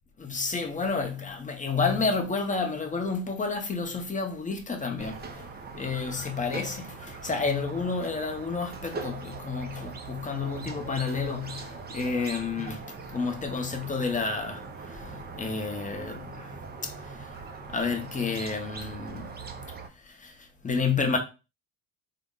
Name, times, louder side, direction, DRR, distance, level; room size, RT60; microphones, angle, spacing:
voice 1, 0.2-16.6 16.8-19.4 19.9-21.2, left 4 dB, 15° left, 0.6 m, -31 dB
Squeak, 5.0-19.9, right 4 dB, 20° right, 0.4 m, -41 dB
3.7 x 2.1 x 3.7 m
cardioid pair, 100°, 50 cm